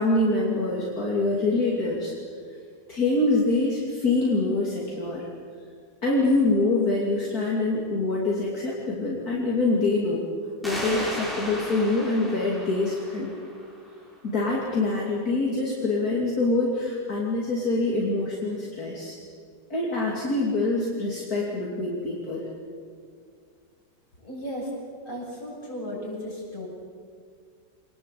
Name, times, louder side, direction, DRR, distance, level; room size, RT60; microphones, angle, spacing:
voice 1, 0.0-2.1 2.9-5.3 6.0-10.2 10.6-13.3 14.2-19.2 19.7-22.5, left 2 dB, 55° left, -4 dB, 3.3 m, -25 dB
sound 1, 10.6-14.0, equal, ahead, 5.8 m, -35 dB
voice 2, 24.2-24.8 25.0-26.7, equal, 25° left, -4 dB, 8.2 m, -35 dB
26.0 x 20.0 x 8.4 m, 2.1 s
omnidirectional pair, 1.9 m